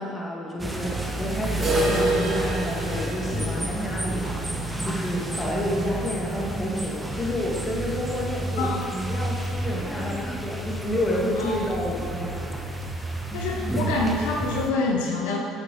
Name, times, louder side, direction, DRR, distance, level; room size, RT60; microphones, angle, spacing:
voice 1, 0.0-4.3 4.8-12.4, left 1 dB, 20° left, -2 dB, 1.5 m, -30 dB
sound 1, 0.6-14.7, right 1 dB, 10° right, 0.8 m, -30 dB
sound 2, 1.6-7.4 7.7-7.8 8.2-8.3 8.8-8.9 9.8-9.9, right 2 dB, 40° right, 1.3 m, -30 dB
voice 2, 8.6-8.9 11.4-11.6 13.3-15.4, left 3 dB, 75° left, 0 dB, 0.6 m, -26 dB
8.5 x 6.1 x 3.0 m, 2.7 s
hypercardioid pair, 65°, 0 cm